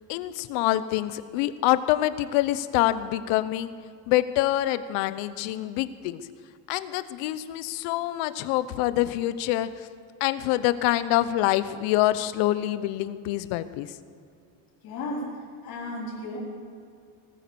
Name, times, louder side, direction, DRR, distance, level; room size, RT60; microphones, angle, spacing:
voice 1, 0.1-3.7 4.1-6.2 6.7-9.7 10.2-13.9, left 14 dB, 80° left, 14 dB, 0.8 m, -25 dB
voice 2, 14.8-15.3 15.6-16.4, left 2 dB, 50° left, -5 dB, 4.4 m, -34 dB
19.0 x 9.5 x 7.0 m, 2.3 s
cardioid pair, 180°, 43 cm